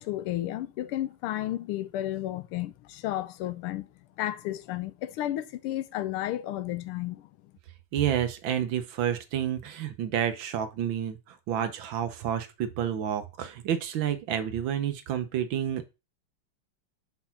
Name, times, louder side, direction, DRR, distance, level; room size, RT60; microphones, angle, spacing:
voice 1, 0.0-3.9 4.2-7.2, left 14 dB, 90° left, 1.5 m, -32 dB
voice 2, 7.9-15.9, right 9 dB, 70° right, 1.4 m, -29 dB
5.5 x 4.2 x 5.7 m
omnidirectional pair, 2.4 m